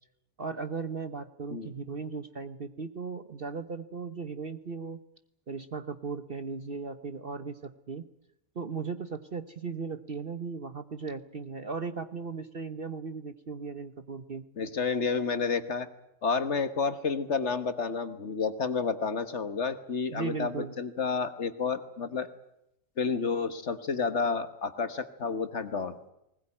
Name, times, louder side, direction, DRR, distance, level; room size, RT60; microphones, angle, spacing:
voice 1, 0.4-5.0 5.5-8.1 8.5-14.5 20.1-20.7, right 5 dB, 40° right, 11 dB, 1.0 m, -37 dB
voice 2, 14.6-15.9 16.2-22.3 23.0-26.0, left 5 dB, 50° left, 11 dB, 1.5 m, -30 dB
20.5 x 20.0 x 9.9 m, 0.82 s
omnidirectional pair, 1.7 m